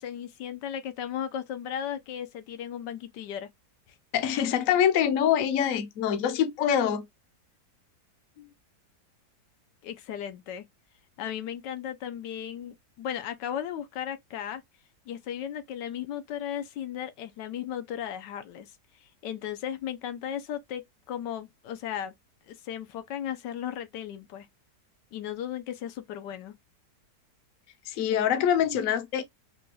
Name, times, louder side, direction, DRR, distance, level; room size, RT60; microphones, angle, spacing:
voice 1, 0.0-3.5 8.4-8.5 9.8-10.6 11.2-14.6 15.1-18.7 19.0-22.1 22.5-24.5 25.1-26.5, left 9 dB, 85° left, 1.3 m, -36 dB
voice 2, 4.1-7.0 27.9-29.2, left 9 dB, 65° left, 0.9 m, -24 dB
4.1 x 2.2 x 3.1 m
omnidirectional pair, 1.8 m